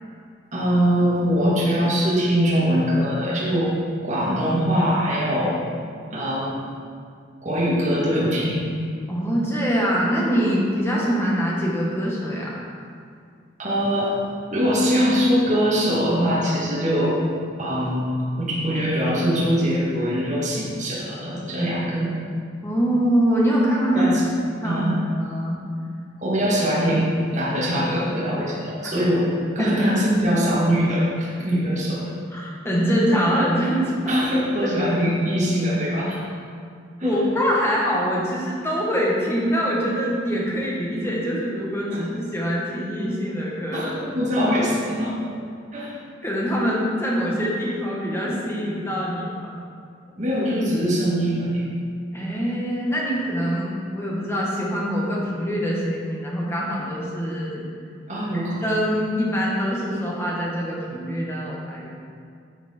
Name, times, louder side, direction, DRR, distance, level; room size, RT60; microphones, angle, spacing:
voice 1, 0.5-3.8 4.0-5.6 6.1-6.6 7.4-8.7 13.6-14.2 14.5-17.2 17.6-18.1 18.3-22.1 23.9-24.2 24.6-25.0 26.2-32.1 34.1-36.2 37.0-37.2 41.9-42.0 43.7-45.2 45.7-45.9 50.2-51.6 58.1-58.7, equal, 40° right, -7 dB, 1.8 m, -22 dB
voice 2, 9.1-12.6 22.6-24.1 24.6-24.8 25.2-25.6 29.6-29.8 32.3-33.9 34.6-34.7 37.0-43.9 46.2-49.5 52.1-57.6 58.3-61.9, equal, 15° left, -4 dB, 1.4 m, -24 dB
10.5 x 5.8 x 4.4 m, 2.3 s
head